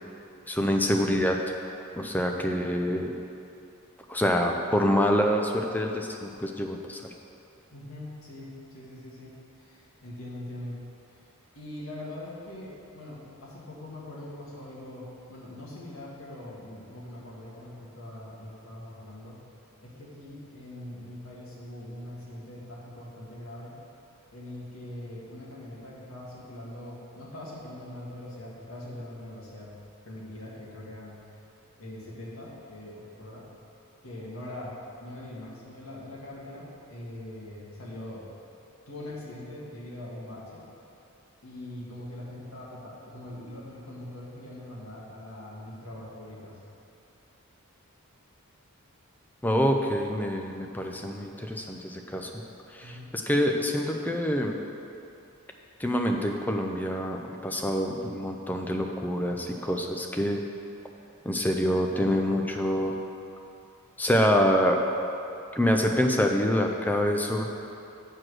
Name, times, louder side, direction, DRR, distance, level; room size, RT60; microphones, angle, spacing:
voice 1, 0.5-1.4 2.0-3.1 4.1-7.0 49.4-52.3 52.7-54.5 55.8-60.4 61.2-62.9 64.0-64.8 65.5-67.4, equal, 10° left, 2 dB, 0.5 m, -26 dB
voice 2, 7.7-10.8 11.5-19.4 19.8-23.8 24.3-29.7 30.0-31.2 31.8-33.5 34.0-38.3 38.9-40.7 41.4-46.6 52.8-53.2, left 1 dB, 70° left, -5 dB, 1.8 m, -42 dB
7.7 x 4.9 x 6.1 m, 2.7 s
head